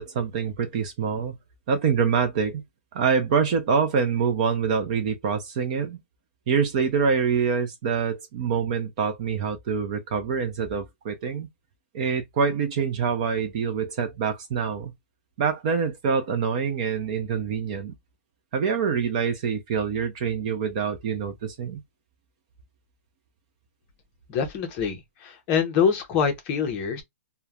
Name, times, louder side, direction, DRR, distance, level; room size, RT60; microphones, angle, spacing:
voice 1, 0.0-1.3 1.7-2.6 2.9-6.0 6.5-11.5 11.9-14.9 15.4-17.9 18.5-21.8, right 6 dB, 30° right, 0.5 m, -25 dB
voice 2, 24.3-27.0, left 7 dB, 20° left, 0.6 m, -25 dB
3.0 x 2.1 x 2.3 m
hypercardioid pair, 170°, 8 cm